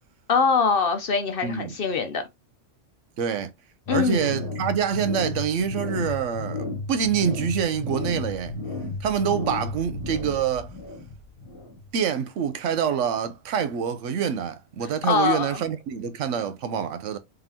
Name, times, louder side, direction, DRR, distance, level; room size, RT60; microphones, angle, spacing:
voice 1, 0.3-2.2 3.9-4.4 15.1-15.6, left 5 dB, 55° left, 0.7 m, -23 dB
voice 2, 1.4-1.7 3.2-3.5 3.9-8.6 9.0-10.7 11.9-17.2, right 7 dB, 75° right, 1.0 m, -26 dB
sound 1, 3.9-12.0, left 2 dB, 30° left, 1.1 m, -33 dB
3.7 x 3.4 x 2.8 m
omnidirectional pair, 1.3 m